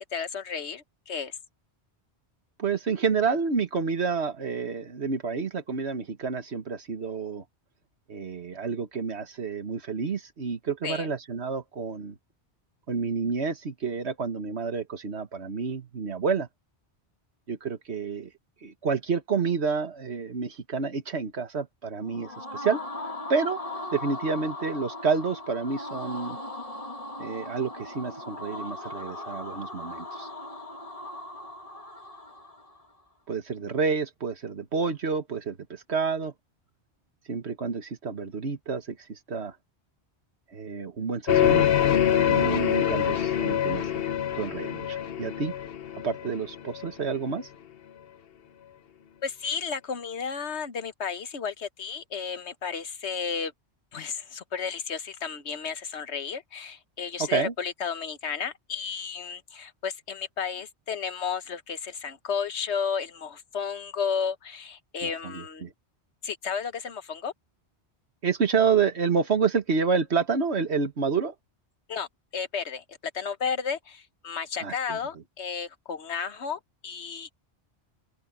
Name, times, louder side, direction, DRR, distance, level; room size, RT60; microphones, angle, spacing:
voice 1, 0.1-1.4 10.8-11.1 49.2-53.5 53.9-65.6 66.2-67.3 71.9-72.1 72.3-77.3, left 6 dB, 85° left, 1.4 m, -33 dB
voice 2, 2.6-7.4 8.1-12.2 12.9-16.5 17.5-18.3 18.6-22.8 23.3-23.6 23.9-26.4 27.2-30.3 33.3-36.3 37.3-39.6 40.5-41.7 42.1-44.0 44.3-45.5 46.0-47.5 57.2-57.5 65.0-65.7 68.2-71.3 74.6-75.0, right 5 dB, 80° right, 1.8 m, -29 dB
sound 1, 22.0-32.9, left 2 dB, 35° left, 1.9 m, -38 dB
sound 2, 41.3-46.9, left 9 dB, 65° left, 1.1 m, -25 dB
open air
omnidirectional pair, 1.1 m